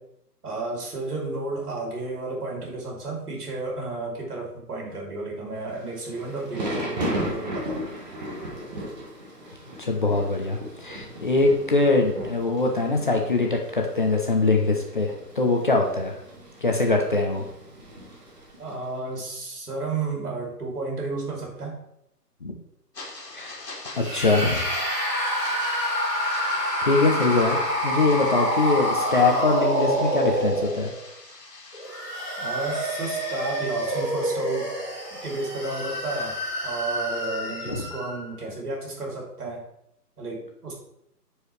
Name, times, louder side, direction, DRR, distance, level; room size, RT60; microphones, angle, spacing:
voice 1, 0.4-7.8 18.6-21.8 32.4-34.7 35.1-39.6 40.2-40.7, right 3 dB, 65° right, -1 dB, 3.0 m, -32 dB
Thunder / Rain, 5.8-18.9, equal, 25° right, 1.3 m, -36 dB
voice 2, 9.8-16.1 16.6-17.5 22.4-22.5 23.3-23.6 23.9-24.6 26.8-27.6 27.8-30.9 37.7-37.8, left 3 dB, 30° left, 1 dB, 0.7 m, -23 dB
sound 1, 22.9-34.1, left 3 dB, 85° left, 1.9 m, -43 dB
sound 2, 24.0-31.0 31.7-38.2, equal, 5° right, 2.6 m, -27 dB
9.3 x 4.7 x 3.2 m, 0.78 s
hypercardioid pair, 160°, 48 cm